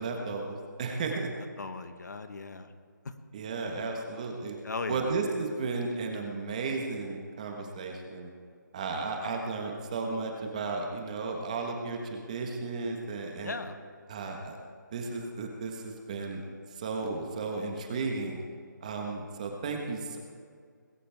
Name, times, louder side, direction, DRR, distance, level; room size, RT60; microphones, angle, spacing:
voice 1, 0.0-1.3 3.3-4.6 4.9-8.3 8.7-13.5 14.1-14.6 14.9-16.4 16.7-18.4 18.8-20.2, right 4 dB, 20° right, 2 dB, 1.4 m, -34 dB
voice 2, 1.6-2.7 3.0-3.1 4.6-5.1 13.4-13.8, left 4 dB, 60° left, 8 dB, 1.3 m, -37 dB
20.0 x 16.5 x 3.6 m, 2.1 s
hypercardioid pair, 175°, 11 cm